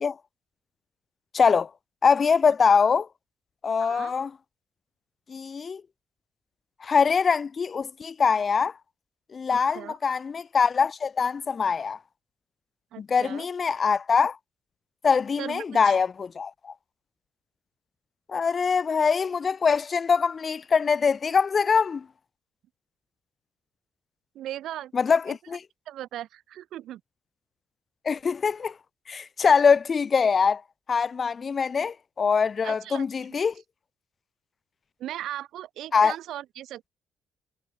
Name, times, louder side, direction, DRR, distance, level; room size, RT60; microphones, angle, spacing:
voice 1, 1.3-1.7 2.0-3.1 3.6-4.3 5.3-5.8 6.8-8.7 9.3-12.0 13.0-14.4 15.0-16.7 18.3-22.1 24.9-25.6 28.1-28.7 29.1-30.6 30.9-33.5 35.9-36.1, left 5 dB, 40° left, 0.4 m, -23 dB
voice 2, 3.8-4.1 9.5-10.0 12.9-13.5 15.4-16.0 24.3-24.9 25.3-25.4 25.9-27.0 32.6-33.1 35.0-36.9, right 12 dB, 75° right, 5.5 m, -38 dB
cardioid pair, 85°, 0 cm